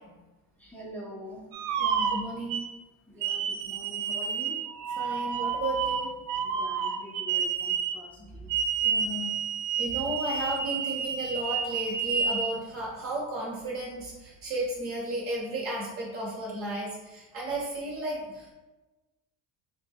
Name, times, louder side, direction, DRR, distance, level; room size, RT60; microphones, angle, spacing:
voice 1, 0.6-1.5 3.1-4.7 6.4-8.5, equal, 5° left, -5 dB, 0.5 m, -44 dB
sound 1, 1.5-2.7 3.2-8.0 8.5-12.5, right 6 dB, 85° right, 0.6 m, -30 dB
voice 2, 1.8-2.6 5.0-6.1 8.2-8.4 8.8-9.3 9.8-18.5, right 2 dB, 30° right, -4 dB, 1.1 m, -34 dB
3.7 x 2.3 x 4.4 m, 1.1 s
cardioid pair, 160°, 43 cm